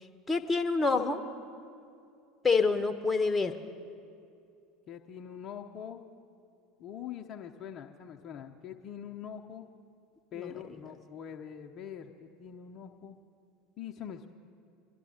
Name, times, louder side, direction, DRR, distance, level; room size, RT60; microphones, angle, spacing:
voice 1, 0.3-1.2 2.4-3.5 10.4-10.5, left 4 dB, 15° left, 6 dB, 0.9 m, -27 dB
voice 2, 4.9-6.0 6.8-9.7 10.3-13.2 13.8-14.3, left 9 dB, 40° left, 3 dB, 0.8 m, -43 dB
25.5 x 11.5 x 2.9 m, 2.4 s
figure-of-eight pair, 70°, 0 cm